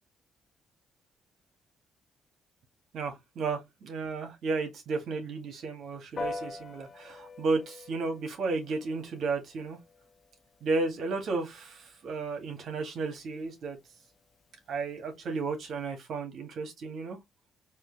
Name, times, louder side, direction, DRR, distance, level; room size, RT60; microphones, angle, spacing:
voice 1, 2.9-9.8 10.6-13.8 14.7-17.2, right 3 dB, 65° right, 1.8 m, -33 dB
Piano, 6.2-15.9, left 3 dB, 40° left, 0.9 m, -46 dB
4.4 x 2.6 x 3.4 m
cardioid pair, 90°, 0 cm